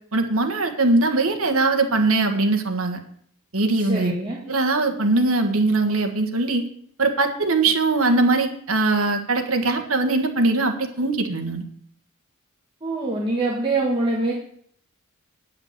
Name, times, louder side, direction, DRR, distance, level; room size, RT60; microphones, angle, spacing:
voice 1, 0.1-3.0 3.5-4.1 4.5-6.6 7.0-11.7, right 3 dB, 70° right, 5 dB, 1.6 m, -21 dB
voice 2, 3.7-4.4 12.8-14.3, right 2 dB, 25° right, -4 dB, 1.6 m, -24 dB
9.6 x 5.8 x 8.4 m, 0.64 s
head